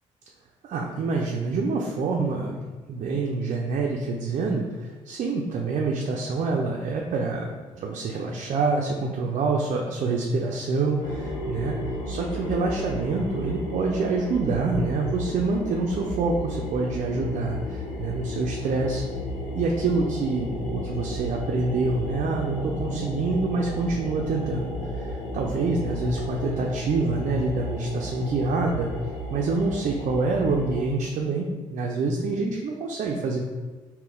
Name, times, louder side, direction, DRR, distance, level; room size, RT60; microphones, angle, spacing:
voice 1, 0.6-2.6 2.9-7.5 7.8-11.8 12.1-19.0 19.5-28.9 29.3-33.4, right 3 dB, 50° right, -1 dB, 0.5 m, -26 dB
sound 1, 11.0-30.8, left 1 dB, 80° left, 0.6 m, -33 dB
3.9 x 2.2 x 3.7 m, 1.3 s
hypercardioid pair, 50°, 15 cm